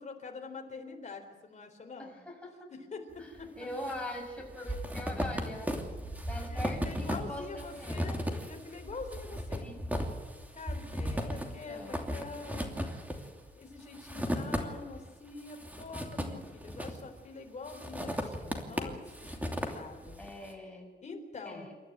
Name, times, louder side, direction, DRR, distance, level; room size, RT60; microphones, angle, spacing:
voice 1, 0.0-2.2 2.7-3.7 6.5-9.7 10.5-12.8 13.6-20.2 21.0-21.7, left 4 dB, 45° left, 4 dB, 3.9 m, -45 dB
voice 2, 2.0-2.7 3.2-3.3 3.6-5.7 6.2-8.1 9.6-10.2 11.3-12.1 20.2-20.9 21.4-21.7, left 1 dB, 5° left, 0 dB, 6.5 m, -42 dB
sound 1, 3.4-4.0 4.2-15.0 15.4-17.2 17.7-20.3, equal, 10° right, 2.8 m, -36 dB
29.0 x 13.5 x 9.0 m, 1.4 s
wide cardioid pair, 175°, 17 cm